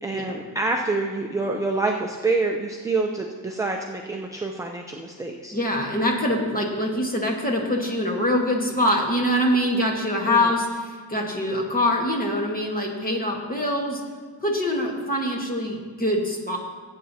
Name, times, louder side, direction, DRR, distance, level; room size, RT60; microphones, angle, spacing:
voice 1, 0.0-5.5 10.3-10.5, right 3 dB, 10° right, 1 dB, 0.4 m, -27 dB
voice 2, 5.5-14.0 14.4-16.6, left 1 dB, 20° left, 0 dB, 1.4 m, -24 dB
18.0 x 8.5 x 2.7 m, 1.6 s
wide cardioid pair, 180°, 43 cm